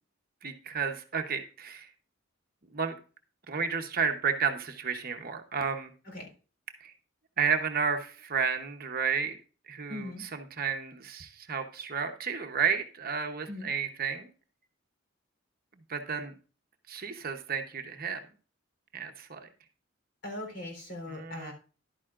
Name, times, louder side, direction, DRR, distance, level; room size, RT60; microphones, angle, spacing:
voice 1, 0.4-1.9 2.7-3.0 3.5-5.9 6.8-6.9 7.4-9.4 9.7-14.3 15.9-16.3 16.9-18.2 18.9-19.4 21.1-21.5, right 6 dB, 45° right, 6 dB, 0.9 m, -32 dB
voice 2, 9.9-10.2 13.5-13.7 20.2-21.5, left 1 dB, 55° left, 2 dB, 3.7 m, -40 dB
11.0 x 9.1 x 2.5 m, 0.36 s
head